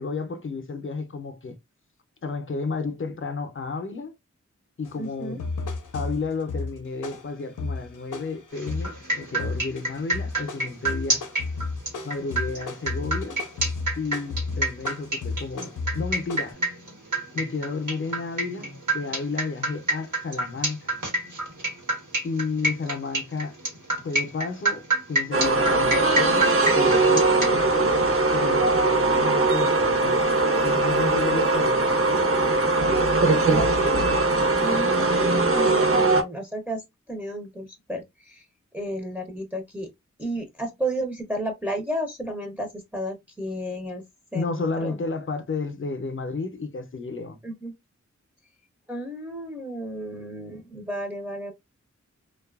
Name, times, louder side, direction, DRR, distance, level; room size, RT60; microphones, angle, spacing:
voice 1, 0.0-1.6 2.2-4.1 4.8-5.4 5.9-11.2 12.0-13.4 14.0-16.6 17.3-20.9 22.2-23.6 24.0-30.2 30.6-33.1 44.3-47.4, left 4 dB, 45° left, 0.6 m, -32 dB
sound 1, 4.8-5.0 5.4-9.0 9.4-9.8 10.1-16.5, left 3 dB, 90° left, 0.6 m, -33 dB
voice 2, 5.0-5.4 34.6-38.4 38.7-39.9 40.2-44.0 44.3-45.0 47.4-47.7 48.9-51.5, right 1 dB, 5° right, 0.6 m, -33 dB
sound 2, 8.5-27.5, right 2 dB, 80° right, 1.1 m, -28 dB
sound 3, 25.3-36.2, right 2 dB, 45° right, 0.7 m, -21 dB
2.6 x 2.3 x 2.3 m
wide cardioid pair, 75°, 30 cm